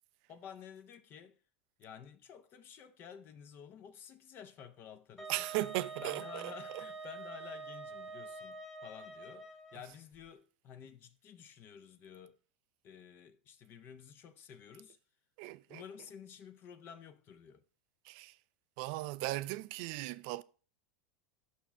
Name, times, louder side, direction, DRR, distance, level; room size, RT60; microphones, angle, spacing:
voice 1, 0.3-1.4 1.8-5.5 6.0-12.4 12.8-15.0 15.7-17.6, left 8 dB, 40° left, 0.7 m, -52 dB
Wind instrument woodwind instrument, 5.2-9.9, right 4 dB, 5° left, 1.2 m, -46 dB
voice 2, 5.3-6.5 15.4-15.8 18.1-18.3 18.8-20.4, right 18 dB, 55° right, 0.4 m, -37 dB
6.0 x 4.3 x 5.7 m
figure-of-eight pair, 85°, 6 cm